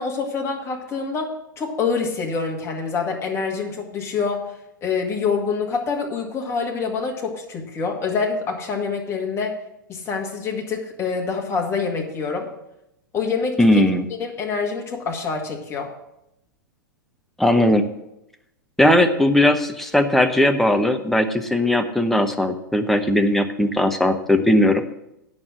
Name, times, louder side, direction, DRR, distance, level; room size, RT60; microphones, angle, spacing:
voice 1, 0.0-4.4 4.8-9.5 9.9-12.5 13.1-13.8 14.2-15.9, left 5 dB, 25° left, 1 dB, 2.0 m, -26 dB
voice 2, 13.6-14.1 17.4-17.8 18.8-24.8, left 1 dB, ahead, 5 dB, 0.8 m, -18 dB
8.8 x 6.5 x 7.5 m, 0.85 s
figure-of-eight pair, 100°, 11 cm